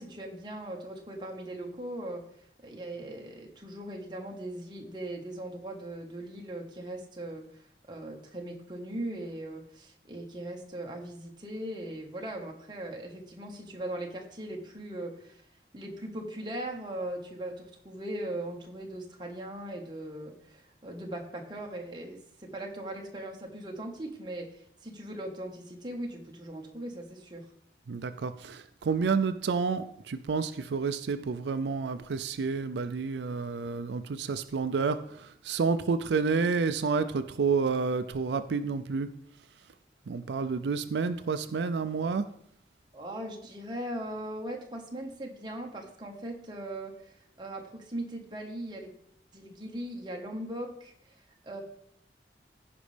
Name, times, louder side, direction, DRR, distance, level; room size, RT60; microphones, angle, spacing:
voice 1, 0.0-2.2 2.6-15.4 15.7-27.5 42.9-47.1 47.4-48.9 49.3-51.6, right 1 dB, 25° right, 1 dB, 1.3 m, -39 dB
voice 2, 27.9-39.1 40.1-42.3, right 5 dB, 85° right, 10 dB, 0.4 m, -29 dB
15.0 x 5.2 x 3.3 m, 0.67 s
head